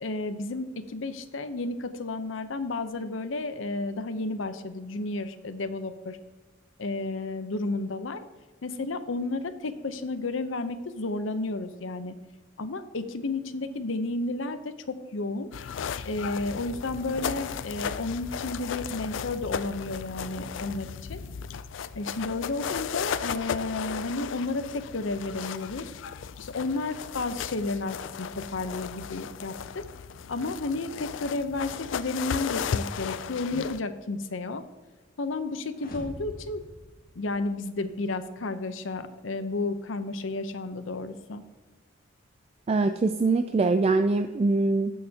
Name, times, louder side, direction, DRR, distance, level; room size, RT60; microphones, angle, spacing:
voice 1, 0.0-6.2 6.8-8.2 8.6-12.1 12.6-15.5 16.0-21.2 22.0-25.9 26.4-29.9 30.3-34.6 35.2-36.6 37.2-41.4, left 2 dB, 90° left, 10 dB, 0.7 m, -32 dB
sound 1, 15.5-33.8, left 7 dB, 75° left, 0.4 m, -35 dB
sound 2, 35.7-37.9, equal, 50° left, 1.6 m, -44 dB
voice 2, 42.7-44.9, right 3 dB, 30° right, 8 dB, 0.3 m, -23 dB
15.0 x 6.6 x 2.8 m, 1.2 s
head